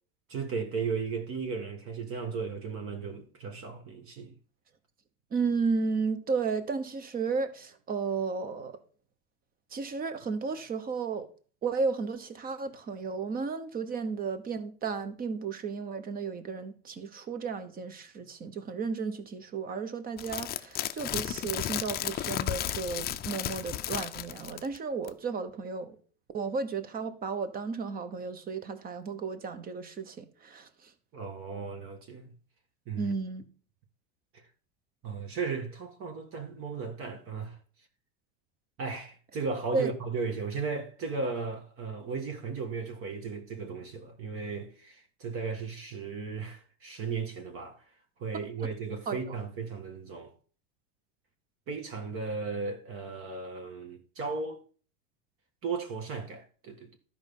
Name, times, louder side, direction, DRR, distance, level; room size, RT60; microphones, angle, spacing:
voice 1, 0.3-4.3 31.1-32.3 32.9-33.1 34.3-34.4 35.0-37.6 38.8-47.8 48.2-50.3 51.7-54.6 55.6-57.0, right 4 dB, 40° right, 1.7 m, -36 dB
voice 2, 5.3-8.8 9.7-11.3 11.6-26.0 26.3-30.9 33.0-33.4 39.7-39.9 49.1-49.4, right 4 dB, 25° right, 1.2 m, -33 dB
sound 1, 20.2-24.8 25.1-25.2, left 12 dB, 30° left, 0.5 m, -34 dB
12.0 x 5.3 x 5.4 m
supercardioid pair, 135°, 32 cm